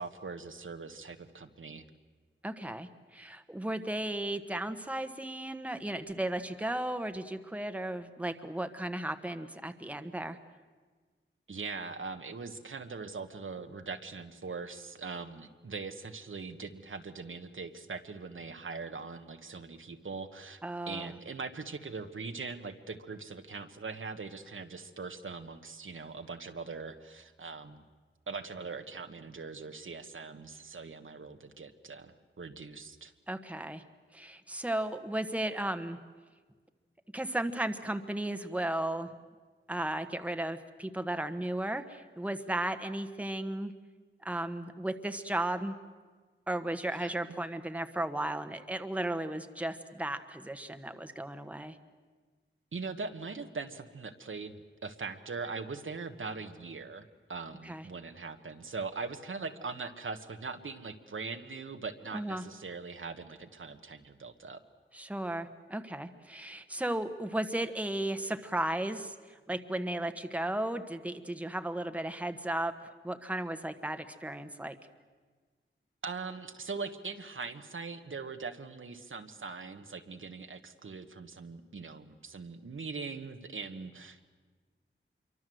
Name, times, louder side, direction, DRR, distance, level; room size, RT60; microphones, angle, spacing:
voice 1, 0.0-1.8 11.5-20.6 20.9-27.8 28.3-33.1 46.9-47.1 52.7-64.6 76.0-84.3, right 4 dB, 70° right, 7 dB, 1.4 m, -41 dB
voice 2, 2.4-10.4 20.6-21.1 33.3-33.8 34.1-36.0 37.1-39.1 39.7-43.7 44.2-45.7 46.5-51.8 57.6-57.8 62.1-62.4 64.9-74.7, right 1 dB, 5° right, 8 dB, 1.3 m, -35 dB
26.5 x 23.5 x 7.8 m, 1.5 s
wide cardioid pair, 85°, 21 cm